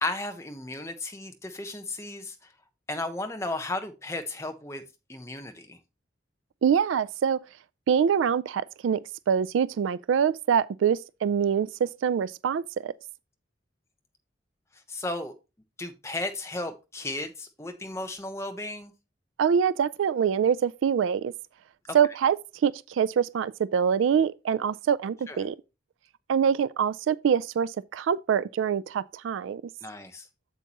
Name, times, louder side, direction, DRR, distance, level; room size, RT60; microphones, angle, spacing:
voice 1, 0.0-2.5 2.9-4.8 5.1-5.8 14.9-15.3 15.8-18.9 22.0-22.1 25.3-25.4 29.8-30.3, left 2 dB, 15° left, 0.9 m, -34 dB
voice 2, 6.6-7.4 7.9-9.0 9.3-12.9 19.4-21.3 21.9-22.4 22.6-25.6 26.3-29.6, right 7 dB, 90° right, 0.3 m, -25 dB
8.1 x 7.1 x 3.0 m
head